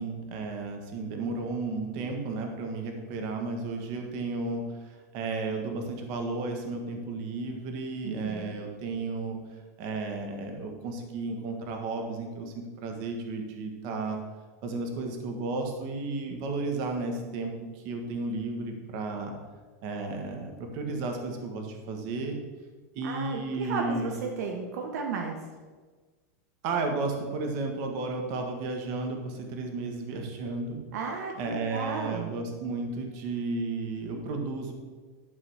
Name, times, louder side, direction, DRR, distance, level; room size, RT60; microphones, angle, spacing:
voice 1, 0.0-9.4 9.8-14.2 14.6-19.3 19.8-22.4 22.9-24.2 26.6-30.8 31.3-34.7, right 3 dB, 45° right, 3 dB, 1.6 m, -33 dB
voice 2, 8.0-8.6 23.0-25.4 30.9-32.3, right 4 dB, 70° right, 2 dB, 1.2 m, -34 dB
11.5 x 4.0 x 6.5 m, 1.4 s
supercardioid pair, 150°, 9 cm